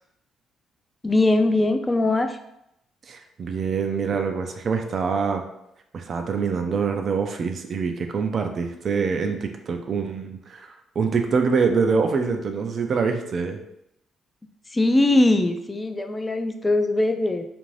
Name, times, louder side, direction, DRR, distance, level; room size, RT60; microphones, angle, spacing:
voice 1, 1.0-2.4 14.7-17.5, left 2 dB, 20° left, 7 dB, 0.3 m, -21 dB
voice 2, 3.1-5.4 5.9-13.6, right 5 dB, 50° right, 5 dB, 0.4 m, -25 dB
2.5 x 2.5 x 3.2 m, 0.79 s
cardioid pair, 90°, 0 cm